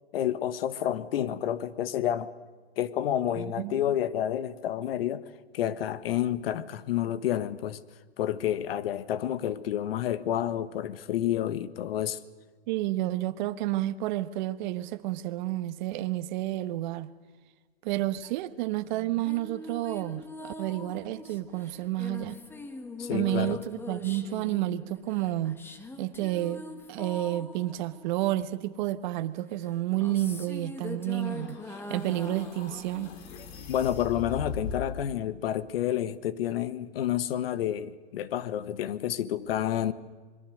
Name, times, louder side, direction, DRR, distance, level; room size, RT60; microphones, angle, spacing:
voice 1, 0.1-2.3 2.8-5.2 5.5-7.8 8.2-12.2 23.0-23.6 33.7-39.9, left 11 dB, 65° left, 1.6 m, -29 dB
voice 2, 3.4-3.9 12.7-17.1 17.8-22.4 23.1-25.6 26.0-26.6 26.9-33.1, right 15 dB, 45° right, 1.3 m, -30 dB
sound 1, 18.9-28.8 29.6-34.3, left 2 dB, 5° left, 1.4 m, -42 dB
sound 2, 31.1-35.1, left 5 dB, 45° left, 4.7 m, -40 dB
26.5 x 22.0 x 6.5 m
hypercardioid pair, 145°, 32 cm